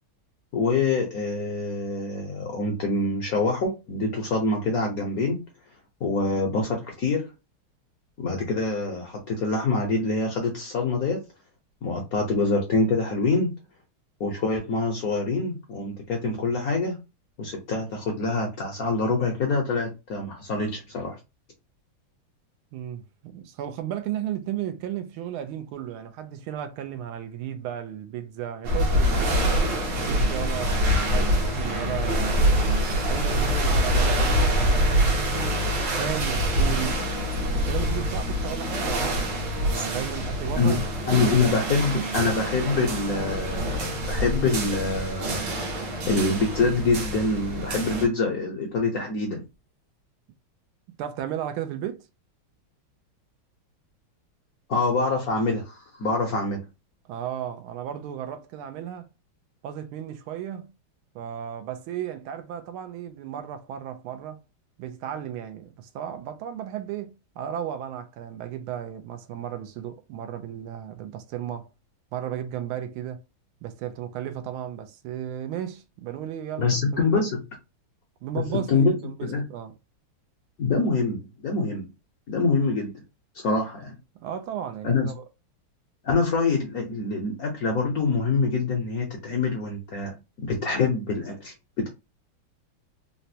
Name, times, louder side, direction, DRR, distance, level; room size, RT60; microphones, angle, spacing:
voice 1, 0.5-5.4 6.0-7.2 8.2-11.2 11.8-13.5 14.2-17.0 17.4-21.2 40.5-40.8 41.1-45.4 46.1-49.4 54.7-56.7 76.6-77.4 78.3-78.9 79.2-79.4 80.6-81.9 82.3-82.9 83.4-84.0 84.8-85.1 86.0-91.9, left 3 dB, 60° left, 1.0 m, -25 dB
voice 2, 22.7-29.4 30.0-32.5 33.0-35.4 35.9-37.0 37.5-40.8 41.1-41.4 51.0-52.1 57.1-59.1 59.6-60.7 61.1-64.4 64.8-71.7 72.1-73.2 73.6-77.2 78.2-79.8 84.2-85.2, right 10 dB, 80° right, 1.4 m, -34 dB
sound 1, 28.6-48.1, equal, 65° right, 1.5 m, -25 dB
4.0 x 2.1 x 2.7 m
omnidirectional pair, 2.3 m